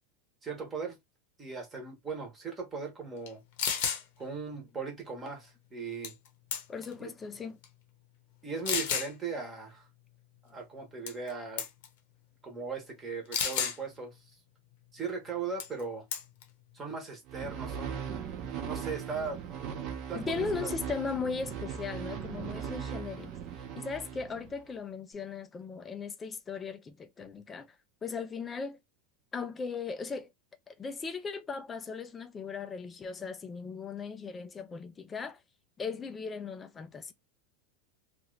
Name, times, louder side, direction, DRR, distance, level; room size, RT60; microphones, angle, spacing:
voice 1, 0.4-1.0 1.4-3.4 4.2-6.1 7.0-7.1 8.4-9.8 10.4-11.6 12.4-14.2 14.9-16.0 16.7-18.0 18.7-19.4 20.1-20.7, right 5 dB, 15° right, 1.0 m, -38 dB
sound 1, 3.3-3.4 3.6-4.0 6.0-6.3 6.5-6.9 7.6-7.7 8.6-9.1 11.1-11.3 11.6-11.9 13.3-13.8 15.6-15.8 16.1-16.4, left 7 dB, 60° left, 0.8 m, -31 dB
voice 2, 6.7-7.6 20.1-23.3 23.7-27.7 28.0-28.8 29.3-30.3 30.7-35.4 35.8-37.1, left 5 dB, 15° left, 0.4 m, -38 dB
sound 2, 17.3-24.7, right 8 dB, 35° right, 0.6 m, -39 dB
2.8 x 2.5 x 3.1 m
supercardioid pair, 165°, 0 cm